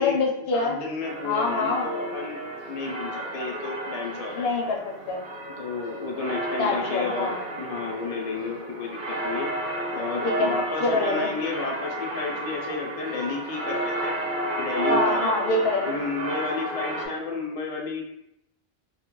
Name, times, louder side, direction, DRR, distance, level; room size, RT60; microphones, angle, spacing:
voice 1, 0.0-0.8 1.2-1.9 4.4-4.8 5.1-5.2 6.6-7.3 10.2-10.5 10.8-11.3 14.9-16.0, left 3 dB, 70° left, 0 dB, 0.8 m, -25 dB
voice 2, 0.5-2.4 2.7-4.5 5.6-9.5 9.9-14.1 14.6-15.3 15.9-18.0, left 4 dB, 50° left, 0 dB, 0.4 m, -32 dB
sound 1, 1.0-17.1, right 1 dB, 55° right, 0.7 m, -31 dB
2.3 x 2.1 x 3.7 m, 0.80 s
omnidirectional pair, 1.1 m